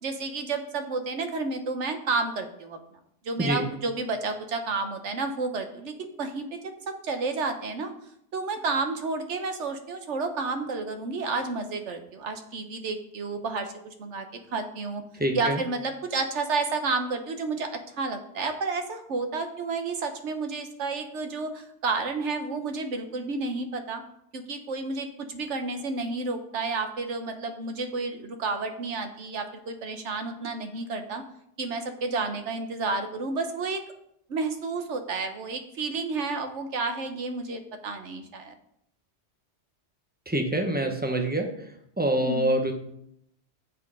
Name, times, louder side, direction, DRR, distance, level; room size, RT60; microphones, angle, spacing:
voice 1, 0.0-2.8 3.2-6.6 6.9-7.9 8.3-13.7 14.0-14.3 14.5-15.0 15.3-17.7 18.0-24.0 24.3-31.2 31.6-33.8 34.3-38.5 42.2-42.5, right 3 dB, 80° right, 7 dB, 1.3 m, -31 dB
voice 2, 15.2-15.6 40.3-41.5 42.0-42.7, right 1 dB, 10° right, 4 dB, 0.9 m, -25 dB
7.5 x 6.2 x 4.8 m, 0.74 s
omnidirectional pair, 1.2 m